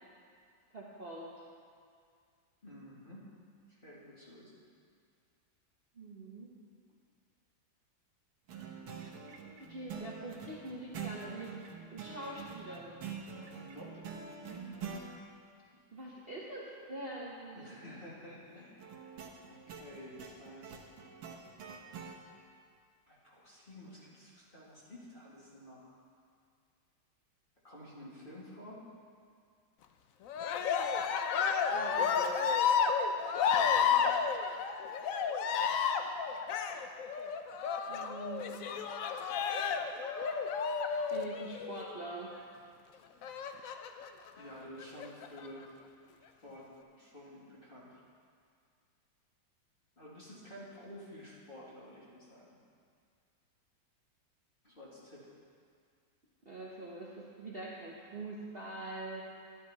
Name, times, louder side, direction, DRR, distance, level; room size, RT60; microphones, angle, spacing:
voice 1, 0.7-1.4 5.9-6.5 9.7-11.6 11.9-12.9 15.9-17.8 31.7-32.5 37.9-38.6 41.1-42.3 56.4-59.2, right 2 dB, 35° right, -5 dB, 1.1 m, -44 dB
voice 2, 2.6-3.3 3.7-4.5 13.5-14.1 17.5-18.9 19.5-20.8 23.1-26.0 27.6-28.9 33.5-34.0 44.4-45.8 46.4-48.0 50.0-52.6 54.6-55.3, left 1 dB, 25° left, -7 dB, 2.2 m, -51 dB
sound 1, 8.5-15.1 18.8-22.2, right 6 dB, 90° right, 1.8 m, -45 dB
Cheering, 30.3-42.0 43.2-44.1 44.8-45.5, left 6 dB, 85° left, 0.7 m, -31 dB
11.5 x 11.5 x 4.1 m, 2.2 s
omnidirectional pair, 2.1 m